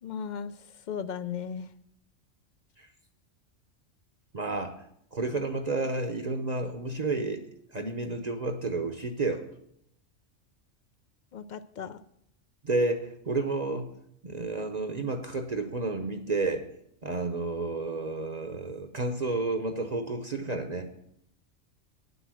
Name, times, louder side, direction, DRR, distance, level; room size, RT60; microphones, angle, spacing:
voice 1, 0.0-1.7 11.3-12.0, left 7 dB, 60° left, 13 dB, 0.5 m, -36 dB
voice 2, 4.3-4.8 5.1-7.4 7.7-9.5 12.6-16.7 17.0-20.9, right 3 dB, 40° right, 6 dB, 0.8 m, -31 dB
9.9 x 8.1 x 6.2 m, 0.73 s
omnidirectional pair, 1.3 m